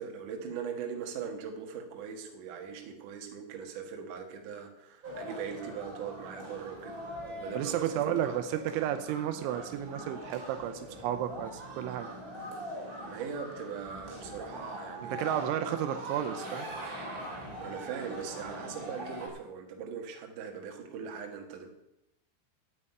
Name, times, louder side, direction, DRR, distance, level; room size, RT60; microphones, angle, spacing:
voice 1, 0.0-6.9 7.4-8.4 13.1-15.2 17.6-21.7, right 7 dB, 60° right, 3 dB, 2.5 m, -40 dB
sound 1, 5.0-19.3, equal, 25° right, 2.7 m, -42 dB
voice 2, 7.5-12.1 15.0-16.7, right 10 dB, 85° right, 9 dB, 3.1 m, -32 dB
8.8 x 8.3 x 8.7 m, 0.87 s
omnidirectional pair, 5.5 m